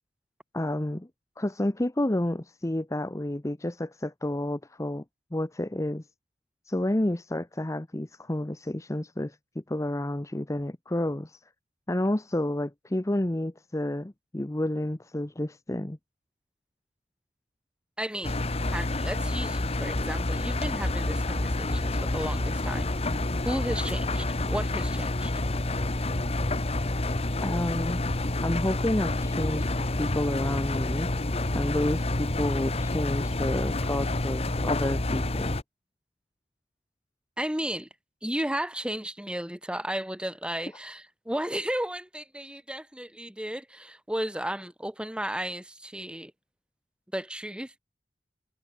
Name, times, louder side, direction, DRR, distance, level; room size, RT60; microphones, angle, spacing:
voice 1, 0.5-1.1 1.4-5.0 5.3-6.1 6.7-11.4 11.9-16.0 27.4-28.0 28.4-31.1 31.5-35.6, left 1 dB, 15° left, 0.8 m, -30 dB
voice 2, 18.0-18.4 18.6-22.9 23.4-25.3 37.4-37.9 38.2-46.3 47.1-47.8, right 1 dB, 5° right, 2.8 m, -34 dB
Engine, 18.2-35.6, left 2 dB, 35° left, 1.3 m, -28 dB
head